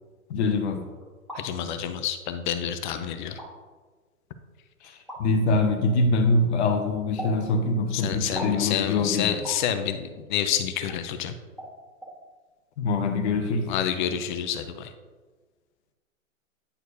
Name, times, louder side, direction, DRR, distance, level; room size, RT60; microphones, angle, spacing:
voice 1, 0.3-0.8 4.8-9.3 12.8-13.7, left 3 dB, 50° left, 6 dB, 0.9 m, -24 dB
sound 1, 1.0-1.4 2.3-2.4 3.2-3.5 5.1-5.2 7.2-7.4 8.3-8.6 9.4-9.6 10.9-11.0 11.6-11.7 12.0-12.1, equal, ahead, 1.6 m, -37 dB
voice 2, 1.3-3.4 7.9-11.3 13.7-14.9, left 9 dB, 35° left, 10 dB, 0.5 m, -28 dB
9.8 x 4.5 x 2.7 m, 1.4 s
hypercardioid pair, 120°, 42 cm